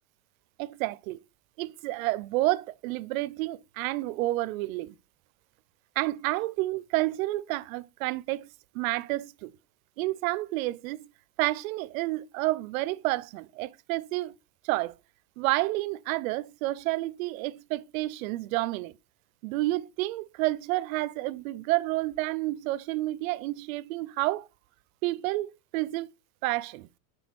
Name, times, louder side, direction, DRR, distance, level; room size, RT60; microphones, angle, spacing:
voice 1, 0.6-1.2 1.6-4.9 6.0-8.5 8.7-9.5 10.0-11.1 11.4-14.3 14.6-14.9 15.4-18.9 19.4-24.5 25.0-26.1 26.4-26.9, right 19 dB, 70° right, 0.5 m, -30 dB
6.1 x 4.6 x 4.4 m
supercardioid pair, 160°, 44 cm